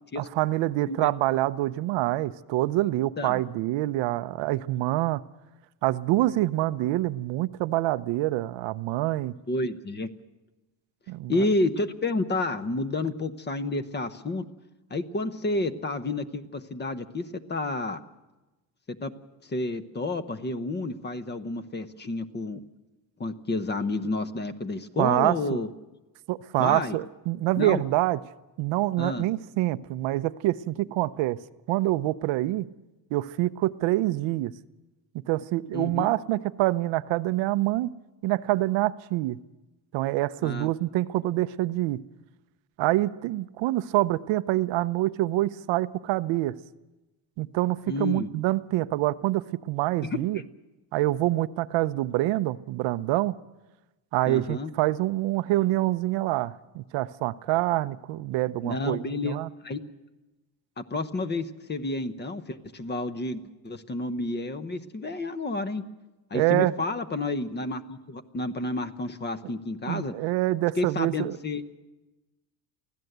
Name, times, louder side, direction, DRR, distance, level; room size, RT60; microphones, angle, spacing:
voice 1, 0.2-5.2 5.8-9.3 11.1-11.3 25.0-25.6 26.3-28.2 28.6-31.4 31.7-32.7 33.1-34.5 35.3-37.9 38.2-39.4 39.9-42.0 42.8-46.5 47.4-50.4 50.9-53.4 54.1-59.5 66.3-66.7 69.9-71.4, right 17 dB, 70° right, 13 dB, 0.8 m, -26 dB
voice 2, 9.5-10.1 11.3-14.5 14.9-18.0 19.0-19.1 19.4-22.6 23.2-25.7 26.6-27.0 27.6-27.8 29.0-29.3 35.7-36.1 40.4-40.7 47.9-48.3 50.0-50.4 54.3-54.7 58.6-59.8 60.8-65.8 66.3-70.1 70.8-71.6, left 2 dB, 20° left, 11 dB, 1.0 m, -30 dB
24.0 x 16.0 x 8.0 m, 1.1 s
cardioid pair, 130°, 46 cm